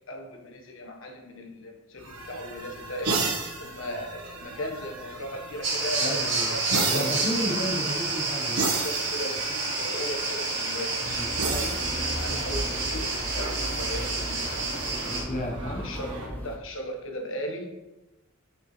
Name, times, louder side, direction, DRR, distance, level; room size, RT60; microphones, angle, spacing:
voice 1, 0.0-3.2 3.6-7.1 8.7-14.8 15.3-17.7, equal, 60° left, 1 dB, 1.5 m, -37 dB
sound 1, 2.0-13.1 14.7-16.3, right 3 dB, 85° right, 1.4 m, -34 dB
sound 2, 5.6-15.2, right 3 dB, 55° right, 3.0 m, -29 dB
voice 2, 6.0-6.6 6.9-8.7 11.0-11.3 15.1-15.9, equal, 35° left, 0 dB, 1.1 m, -32 dB
sound 3, 10.8-16.6, equal, 10° left, 0.8 m, -36 dB
9.2 x 6.8 x 3.4 m, 1.0 s
head